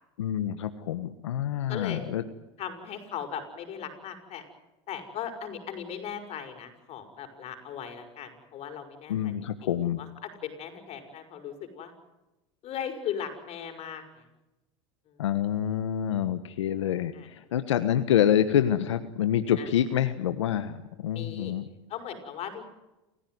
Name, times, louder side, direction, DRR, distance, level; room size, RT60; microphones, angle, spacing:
voice 1, 0.2-2.2 9.1-10.0 15.2-21.6, left 10 dB, 90° left, 10 dB, 1.4 m, -27 dB
voice 2, 1.7-2.0 2.6-4.4 4.9-9.3 9.6-9.7 10.0-11.9 12.6-14.0 15.1-15.2 17.1-17.3 19.6-19.7 21.1-21.5 21.9-22.6, left 8 dB, 45° left, 6 dB, 6.6 m, -38 dB
29.0 x 16.0 x 9.6 m, 1.0 s
hypercardioid pair, 100°, 15 cm